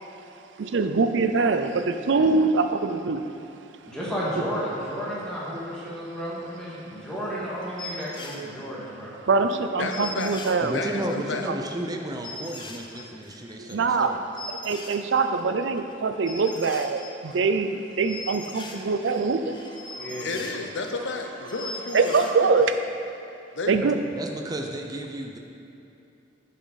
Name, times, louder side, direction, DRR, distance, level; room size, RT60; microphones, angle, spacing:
voice 1, 0.6-3.3 9.3-10.7 13.6-14.2 14.5-19.6 19.9-20.1 21.9-22.7 23.7-24.0, right 4 dB, 80° right, 8 dB, 0.5 m, -23 dB
voice 2, 3.9-9.1 20.0-20.3, equal, 5° left, -8 dB, 1.9 m, -32 dB
sound 1, 7.2-7.3 7.6-8.4 9.0-9.1 9.3-9.4 9.6-9.7 9.9-11.3 11.8-11.9 12.2-15.4 15.7-15.9 16.3-17.6 17.9-21.2 21.4-22.8 23.1-23.2, left 2 dB, 25° left, 0.7 m, -40 dB
voice 3, 9.8-10.4 10.7-11.5 20.2-22.5 23.5-23.8, left 3 dB, 85° left, 4 dB, 0.7 m, -32 dB
voice 4, 10.6-14.2 23.8-25.4, right 1 dB, 20° right, 2 dB, 0.6 m, -33 dB
9.2 x 5.8 x 4.1 m, 2.8 s
head